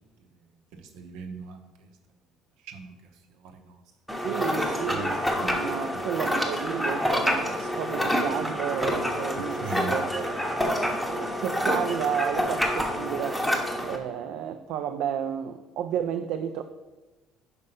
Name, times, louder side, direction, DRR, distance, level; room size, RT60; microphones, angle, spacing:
voice 1, 0.7-1.7 2.6-2.9 3.4-3.8 4.9-5.1 5.4-5.6 9.3-9.9, right 5 dB, 90° right, 5 dB, 0.9 m, -39 dB
sound 1, 4.1-14.0, equal, ahead, 0.8 m, -27 dB
voice 2, 4.2-10.4 10.9-13.4 13.8-16.6, right 9 dB, 70° right, 7 dB, 0.3 m, -32 dB
5.4 x 4.9 x 5.5 m, 1.2 s
cardioid pair, 165°, 0 cm